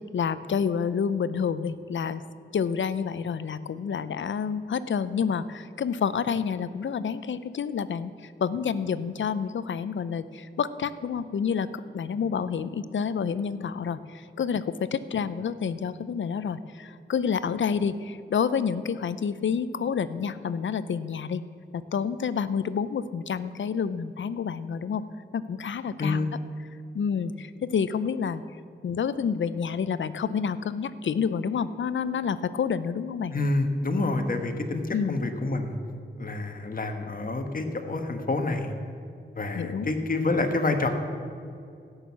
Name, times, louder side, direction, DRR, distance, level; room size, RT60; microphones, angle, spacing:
voice 1, 0.1-2.2 2.5-11.7 11.9-21.4 21.7-25.0 25.3-26.3 26.9-28.4 28.8-33.3 34.9-35.2 39.5-39.9, left 6 dB, 70° left, 15 dB, 0.6 m, -29 dB
voice 2, 26.0-26.3 33.3-34.8 35.1-35.8 36.2-38.7 39.4-40.9, left 2 dB, 45° left, 5 dB, 1.4 m, -27 dB
15.5 x 6.4 x 7.2 m, 2.4 s
cardioid pair, 55°, 20 cm